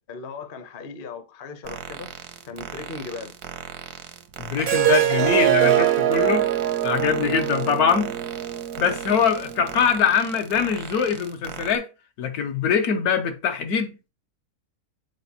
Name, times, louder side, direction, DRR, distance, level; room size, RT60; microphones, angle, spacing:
voice 1, 0.1-2.1 2.4-3.4, left 4 dB, 45° left, 0.8 m, -37 dB
sound 1, 1.6-11.8, right 9 dB, 85° right, 1.3 m, -38 dB
voice 2, 4.4-6.5 6.8-8.1 8.8-11.9 12.2-14.1, left 7 dB, 80° left, 1.3 m, -23 dB
Harp, 4.6-9.8, right 13 dB, 65° right, 0.6 m, -23 dB
8.1 x 4.1 x 2.8 m
omnidirectional pair, 1.6 m